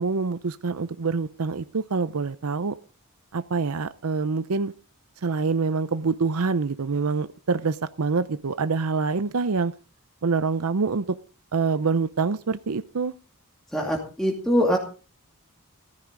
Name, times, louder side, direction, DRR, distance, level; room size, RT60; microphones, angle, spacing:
voice 1, 0.0-2.7 3.3-4.7 5.2-9.7 10.2-11.0 11.5-13.1, right 4 dB, 75° right, 0.6 m, -26 dB
voice 2, 13.7-14.8, equal, ahead, 2.4 m, -23 dB
15.0 x 14.0 x 3.9 m
head